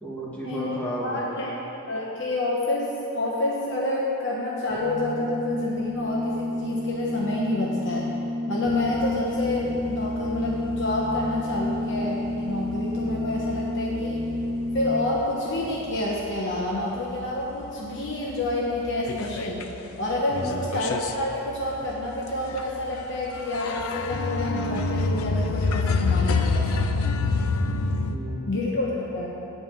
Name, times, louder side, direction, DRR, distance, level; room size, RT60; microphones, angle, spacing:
voice 1, 0.0-1.4 20.3-20.7 28.1-28.8, equal, 5° left, -6 dB, 1.5 m, -34 dB
voice 2, 1.0-1.5 1.9-8.1 8.5-14.2 14.7-19.6 20.0-26.9 28.5-29.3, left 1 dB, 60° left, -4 dB, 1.1 m, -28 dB
Organ, 4.7-15.4, left 1 dB, 45° right, 1.5 m, -30 dB
sound 1, 8.7-15.3 15.6-16.8 17.2-17.3 17.6-17.7 18.0-19.8 20.1-28.2, left 3 dB, 85° left, 0.5 m, -28 dB
9.6 x 5.4 x 7.5 m, 2.9 s
head